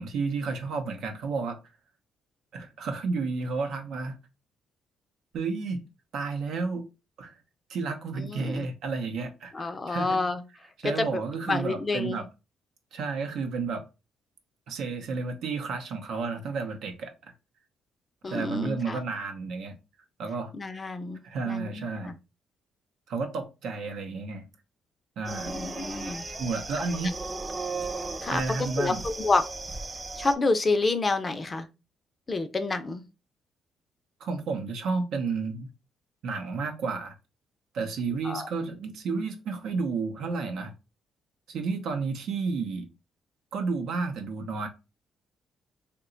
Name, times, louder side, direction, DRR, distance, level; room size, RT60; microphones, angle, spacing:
voice 1, 0.0-1.6 2.5-4.2 5.3-5.8 6.1-6.9 7.2-7.3 7.7-10.2 10.8-12.3 12.9-13.9 14.7-17.1 18.3-19.8 20.2-20.5 21.2-22.1 23.1-24.5 25.2-25.6 26.4-27.1 28.3-29.0 34.2-35.7 36.2-37.1 37.7-40.7 41.5-42.9 43.5-44.7, right 4 dB, 75° right, 0.6 m, -31 dB
voice 2, 8.2-8.7 9.5-10.4 10.8-12.2 18.2-19.0 20.5-22.1 25.5-26.2 28.2-28.4 28.8-29.4 30.2-31.7 32.3-33.0 38.2-38.5, left 3 dB, 30° left, 0.5 m, -29 dB
sound 1, 25.3-30.4, right 3 dB, 25° right, 0.4 m, -36 dB
2.9 x 2.2 x 3.7 m
cardioid pair, 90°, 0 cm